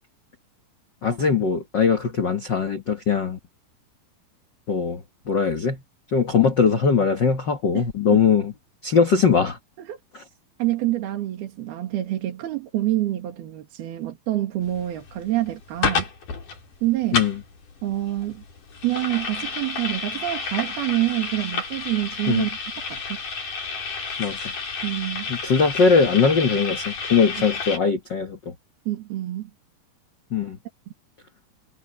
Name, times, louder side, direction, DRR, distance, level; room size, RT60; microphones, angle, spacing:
voice 1, 1.0-3.4 4.7-5.8 6.1-8.5 8.8-9.6 10.1-10.2 17.1-17.4 22.3-22.5 24.2-24.4 25.3-28.5 30.3-30.6, left 5 dB, 75° left, 1.0 m, -21 dB
voice 2, 10.6-16.1 16.8-17.2 17.8-18.4 18.8-22.5 22.9-23.2 24.8-25.3 28.9-29.5, right 15 dB, 85° right, 4.0 m, -26 dB
sound 1, 14.7-27.8, left 5 dB, 55° left, 6.1 m, -31 dB
omnidirectional pair, 4.3 m